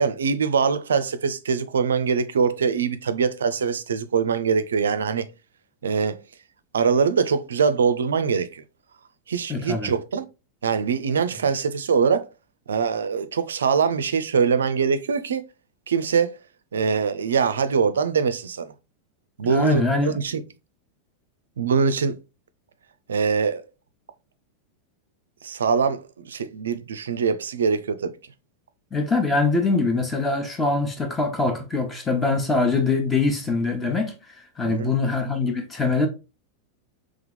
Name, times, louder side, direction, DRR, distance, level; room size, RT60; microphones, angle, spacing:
voice 1, 0.0-5.3 5.8-6.2 6.7-8.6 9.3-10.3 10.6-12.3 12.7-15.5 15.9-16.3 16.7-18.7 19.4-20.4 21.6-22.1 23.1-23.6 25.4-28.1 34.6-34.9, right 6 dB, 65° right, 0.4 m, -23 dB
voice 2, 9.5-9.9 19.4-20.2 28.9-34.1 34.6-36.1, left 3 dB, 15° left, 1.0 m, -23 dB
3.5 x 3.3 x 3.5 m
figure-of-eight pair, 90°, 0 cm